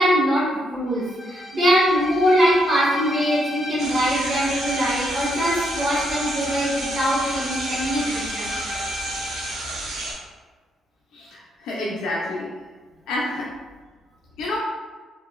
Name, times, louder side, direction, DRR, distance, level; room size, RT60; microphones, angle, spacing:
voice 1, 0.0-8.5, equal, 40° right, -7 dB, 1.0 m, -22 dB
Bowed string instrument, 1.0-9.6, left 1 dB, 5° left, 0.7 m, -34 dB
sound 1, 3.8-10.1, right 2 dB, 85° right, 0.7 m, -31 dB
voice 2, 11.1-12.5 13.1-13.5 14.4-14.6, left 2 dB, 85° left, -5 dB, 0.4 m, -28 dB
2.9 x 2.5 x 2.3 m, 1.4 s
cardioid pair, 90°, 0 cm